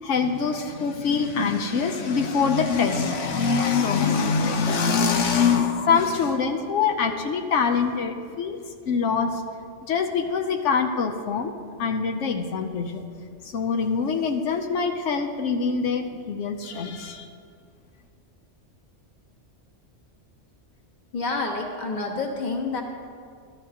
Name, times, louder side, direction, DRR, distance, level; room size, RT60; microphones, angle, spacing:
voice 1, 0.0-8.6 8.9-9.4 9.9-11.5 11.8-13.0 13.4-17.3, left 5 dB, 85° left, 4 dB, 1.0 m, -24 dB
voice 2, 21.1-22.8, left 3 dB, 40° left, 1 dB, 1.3 m, -28 dB
13.5 x 12.5 x 2.9 m, 2.2 s
omnidirectional pair, 1.2 m